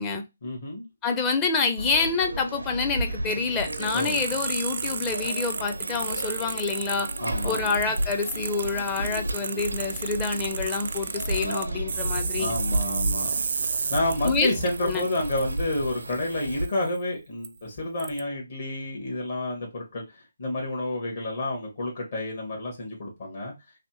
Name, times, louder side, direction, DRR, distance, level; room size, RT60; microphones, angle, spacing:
voice 1, 0.4-0.8 3.9-4.2 7.2-7.8 12.4-13.4 13.7-23.5, left 1 dB, 55° left, 1.4 m, -30 dB
voice 2, 1.0-7.1 7.4-12.5 14.2-14.5 14.8-15.0, left 4 dB, 15° left, 0.6 m, -27 dB
sound 1, 1.8-16.7, right 1 dB, 80° right, 0.6 m, -33 dB
sound 2, 3.6-17.0 17.4-17.5 18.0-18.2, right 5 dB, 50° right, 0.3 m, -33 dB
3.3 x 2.7 x 3.0 m
figure-of-eight pair, 145°, 0 cm